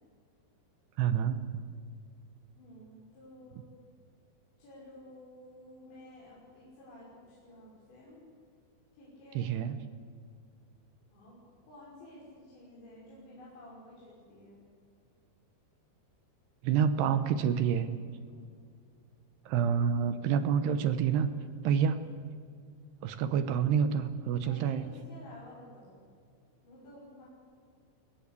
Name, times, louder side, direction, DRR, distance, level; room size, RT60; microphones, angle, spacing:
voice 1, 1.0-1.6 9.4-9.8 16.6-17.9 19.5-21.3 21.6-22.1 23.0-24.9, right 7 dB, 75° right, 11 dB, 2.8 m, -28 dB
voice 2, 2.6-3.8 4.6-8.2 8.9-9.7 11.1-14.6 18.3-18.5 24.3-26.0 26.6-27.2, left 1 dB, 70° left, -7 dB, 8.1 m, -52 dB
23.5 x 19.5 x 8.4 m, 2.2 s
omnidirectional pair, 5.3 m